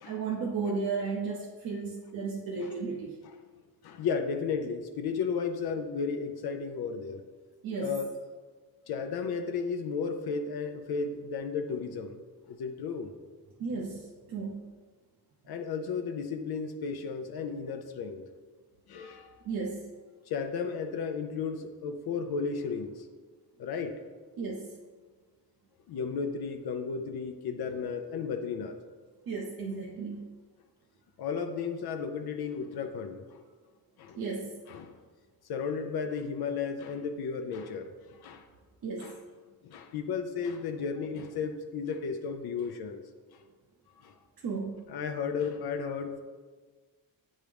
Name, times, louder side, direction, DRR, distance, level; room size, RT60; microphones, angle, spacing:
voice 1, 0.0-3.2 7.6-8.0 13.6-14.7 19.4-19.9 24.4-24.8 29.3-30.3 34.2-34.6 38.8-39.2 44.4-44.8, right 4 dB, 65° right, -2 dB, 0.7 m, -34 dB
voice 2, 3.8-7.2 7.8-8.1 8.9-12.2 12.5-13.1 15.5-18.2 18.9-19.3 20.3-23.0 23.6-23.9 25.9-28.8 31.2-33.4 34.0-34.2 34.7-34.9 35.5-38.4 39.0-39.1 39.6-43.0 44.0-44.1 44.9-46.2, left 5 dB, 75° left, 6 dB, 0.6 m, -34 dB
8.0 x 3.7 x 3.4 m, 1.4 s
cardioid pair, 105°, 38 cm